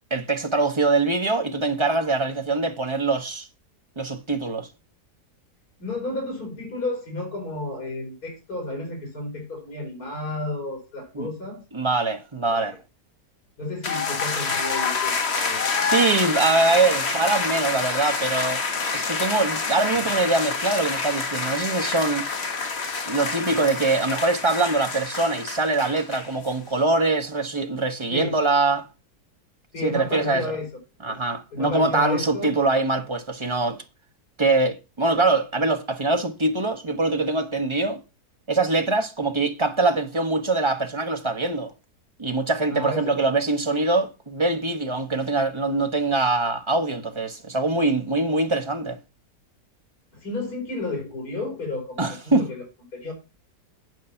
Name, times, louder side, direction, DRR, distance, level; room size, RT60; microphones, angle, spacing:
voice 1, 0.1-3.5 4.0-4.7 11.1-11.3 11.7-12.8 15.8-18.6 18.9-22.3 23.1-28.9 29.8-30.4 31.0-33.8 34.4-38.0 38.5-41.7 42.2-49.0 52.0-52.5, right 3 dB, 25° right, 0.8 m, -23 dB
voice 2, 5.8-11.6 12.5-12.8 13.6-15.7 28.1-28.4 29.7-30.7 31.1-31.2 31.5-32.5 42.7-43.2 43.7-43.9 50.1-52.6 52.9-53.1, left 2 dB, 70° left, 4.7 m, -32 dB
sound 1, 13.8-26.5, left 4 dB, 45° left, 1.4 m, -27 dB
9.4 x 5.5 x 5.6 m
omnidirectional pair, 1.7 m